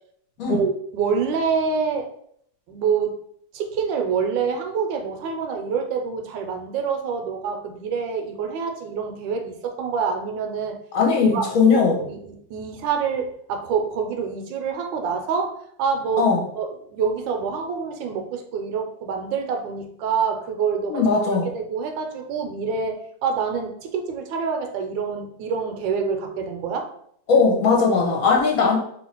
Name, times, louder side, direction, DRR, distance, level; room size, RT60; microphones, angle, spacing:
voice 1, 0.4-2.1 2.7-3.2 3.5-10.8 11.2-16.3 16.6-21.0 21.4-26.9, right 6 dB, 75° right, 4 dB, 1.3 m, -26 dB
voice 2, 10.9-12.0 16.2-16.4 20.9-21.5 27.3-28.8, left 5 dB, 50° left, -1 dB, 1.2 m, -19 dB
3.1 x 2.8 x 4.3 m, 0.66 s
omnidirectional pair, 2.1 m